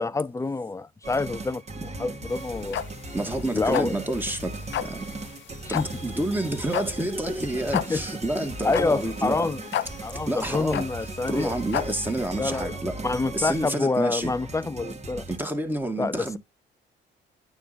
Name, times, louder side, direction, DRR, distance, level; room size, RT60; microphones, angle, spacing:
voice 1, 0.0-2.8 3.5-4.0 5.6-5.9 7.7-8.0 8.6-9.6 10.0-11.6 12.4-12.8 13.0-15.2 16.0-16.4, left 3 dB, 15° left, 0.5 m, -27 dB
sound 1, 1.0-15.4, right 2 dB, 35° right, 1.8 m, -37 dB
sound 2, 2.3-12.3, left 11 dB, 70° left, 0.6 m, -33 dB
voice 2, 3.1-4.5 4.8-5.1 5.7-9.4 10.3-10.9 11.3-12.9 13.3-14.3 15.3-16.4, right 1 dB, 10° right, 1.8 m, -29 dB
9.1 x 3.9 x 3.9 m
cardioid pair, 90°, 20 cm